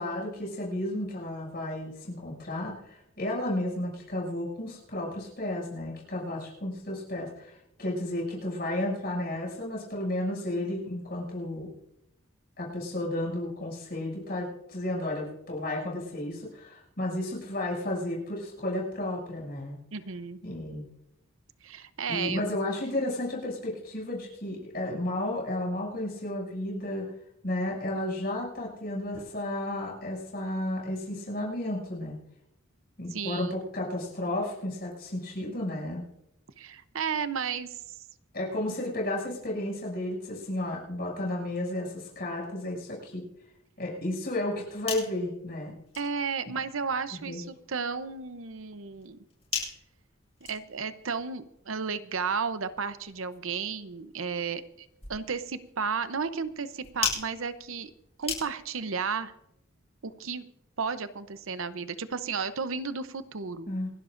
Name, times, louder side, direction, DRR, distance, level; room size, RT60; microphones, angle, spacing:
voice 1, 0.0-11.7 12.6-19.8 20.4-20.9 22.1-27.1 27.4-32.2 33.0-36.1 38.3-43.2 43.8-45.7 47.3-47.4 63.7-63.9, left 1 dB, 45° left, -2 dB, 6.8 m, -33 dB
voice 2, 19.9-20.4 21.6-22.4 33.1-33.5 36.6-38.0 46.0-49.2 50.5-57.9 58.2-59.3 60.0-60.5 60.8-63.7, right 5 dB, 70° right, 12 dB, 0.7 m, -33 dB
sound 1, 44.7-58.9, left 6 dB, 30° left, 7.4 m, -41 dB
28.0 x 12.0 x 2.6 m, 0.81 s
head